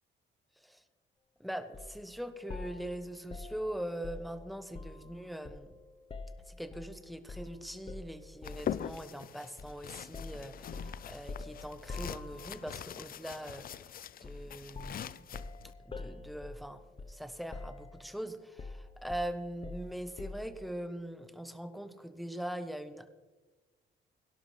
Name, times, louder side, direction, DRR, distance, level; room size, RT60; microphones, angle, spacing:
voice 1, 1.4-5.7 6.5-14.0 14.2-15.3 15.6-23.1, right 1 dB, ahead, 9 dB, 1.1 m, -42 dB
sound 1, 1.7-2.0 2.5-5.1 5.4-6.9 7.3-7.5 7.9-8.8 9.6-9.8 10.1-12.7 14.2-14.5 14.7-17.3 17.5-18.1 18.6-20.6, left 3 dB, 30° left, 0.9 m, -45 dB
sound 2, 8.4-15.7, left 9 dB, 50° left, 0.4 m, -43 dB
17.5 x 11.5 x 3.3 m, 1.2 s
cardioid pair, 90°, 20 cm